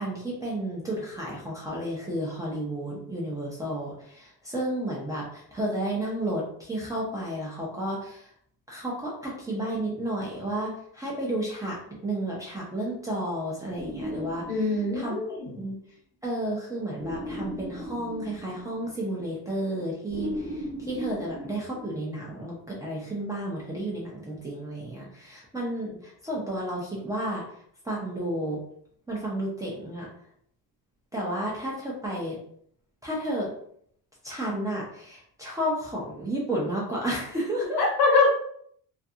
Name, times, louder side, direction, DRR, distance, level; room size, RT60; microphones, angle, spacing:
voice 1, 0.0-8.3 8.7-14.7 14.9-15.8 16.2-27.4 27.8-28.6 29.1-30.1 31.1-32.4 33.0-33.5 34.2-37.9, right 1 dB, 10° right, -6 dB, 0.4 m, -32 dB
sound 1, 13.8-15.4 17.0-19.1 20.1-22.3, left 1 dB, 20° left, 0.7 m, -37 dB
voice 2, 14.5-15.6 37.8-38.3, left 3 dB, 75° left, -1 dB, 1.1 m, -23 dB
2.4 x 2.2 x 2.6 m, 0.64 s
cardioid pair, 155°, 39 cm